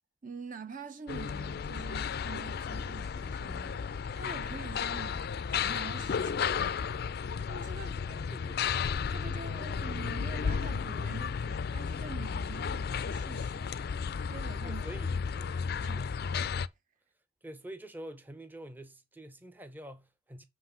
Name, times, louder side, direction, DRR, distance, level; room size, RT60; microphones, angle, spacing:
voice 1, 0.2-6.9 7.5-8.0 9.1-13.8 14.3-14.9 15.8-16.6, right 4 dB, 45° right, 0.7 m, -46 dB
sound 1, 1.1-16.7, left 6 dB, 55° left, 0.4 m, -33 dB
voice 2, 8.1-8.8 14.6-16.1 17.4-20.4, right 1 dB, 10° right, 0.7 m, -47 dB
7.4 x 3.2 x 5.6 m
head